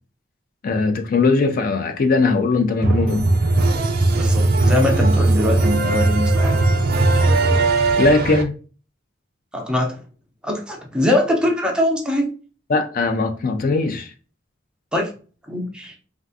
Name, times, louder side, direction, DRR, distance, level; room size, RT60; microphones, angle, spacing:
voice 1, 0.6-3.3 8.0-8.5 12.7-14.1, left 3 dB, 50° left, 0.4 m, -19 dB
sound 1, 2.8-8.4, right 2 dB, 55° right, 0.4 m, -18 dB
voice 2, 4.1-6.6 9.5-10.0 10.4-12.3 14.9-15.1 15.5-15.9, left 1 dB, 5° right, 0.6 m, -22 dB
3.4 x 2.4 x 2.5 m
head